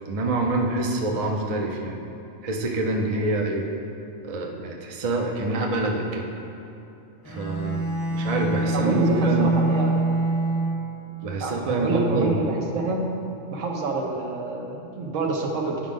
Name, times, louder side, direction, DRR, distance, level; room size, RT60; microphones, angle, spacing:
voice 1, 0.1-2.0 2.4-3.7 4.2-6.3 7.3-7.8 8.1-9.5 11.2-12.8, right 2 dB, 40° right, 1 dB, 0.6 m, -26 dB
Bowed string instrument, 7.2-11.1, right 2 dB, 20° left, 0.7 m, -25 dB
voice 2, 8.7-10.0 11.4-13.1 13.5-15.8, right 3 dB, 80° right, 1 dB, 1.2 m, -27 dB
10.0 x 4.9 x 3.7 m, 2.8 s
omnidirectional pair, 1.3 m